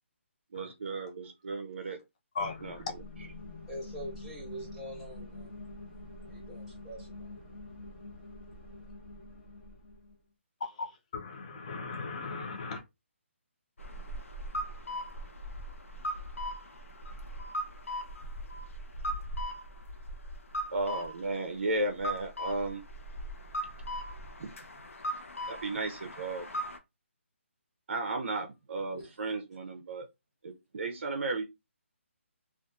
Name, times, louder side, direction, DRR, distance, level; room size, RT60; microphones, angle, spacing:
voice 1, 0.5-2.0 2.6-3.0 20.7-22.8 24.4-24.5 25.5-26.5 27.9-30.1 30.4-31.4, right 2 dB, 55° right, 0.5 m, -34 dB
sound 1, 2.4-10.2, left 2 dB, 45° left, 1.4 m, -46 dB
voice 2, 2.4-2.8 11.1-12.8, left 4 dB, 30° left, 0.5 m, -37 dB
voice 3, 3.7-5.5 6.2-7.3 28.9-29.1, equal, ahead, 1.0 m, -44 dB
sound 2, 13.8-26.8, equal, 80° left, 0.6 m, -39 dB
2.6 x 2.4 x 2.2 m
hypercardioid pair, 165°, 7 cm